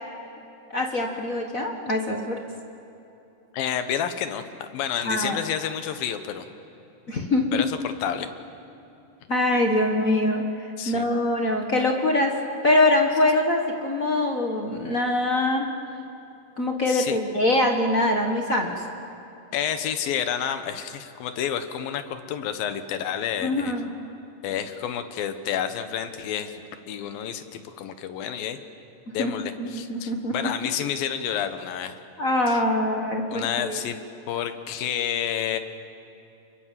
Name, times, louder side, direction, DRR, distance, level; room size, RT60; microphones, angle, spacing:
voice 1, 0.7-2.4 5.0-5.4 7.1-7.6 9.3-12.4 12.6-15.7 16.6-18.9 23.4-23.9 29.1-30.5 32.2-33.8, left 1 dB, 40° left, 2 dB, 1.2 m, -24 dB
voice 2, 3.5-6.5 7.5-8.3 10.8-11.1 16.9-17.2 19.5-23.7 24.4-28.6 29.1-32.0 32.5-32.6 33.3-34.0 34.3-35.6, left 9 dB, 80° left, 9 dB, 3.0 m, -29 dB
29.5 x 22.5 x 7.6 m, 2.9 s
omnidirectional pair, 4.1 m